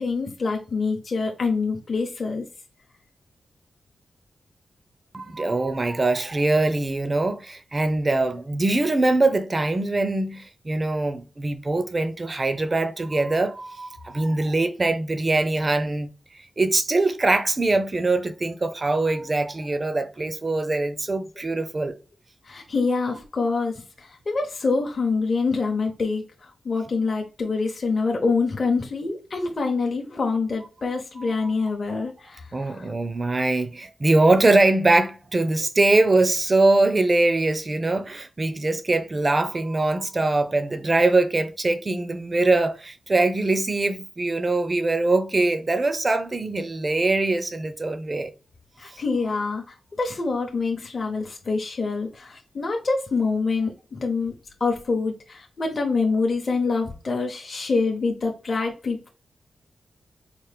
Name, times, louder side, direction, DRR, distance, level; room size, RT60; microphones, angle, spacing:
voice 1, 0.0-2.5 22.5-32.9 48.8-54.3 54.6-59.1, left 4 dB, 40° left, 0.7 m, -26 dB
voice 2, 5.1-16.1 16.6-22.0 31.2-31.5 31.9-32.0 32.5-48.3, right 2 dB, 25° right, 0.5 m, -22 dB
4.3 x 2.1 x 3.2 m
wide cardioid pair, 135°, 0 cm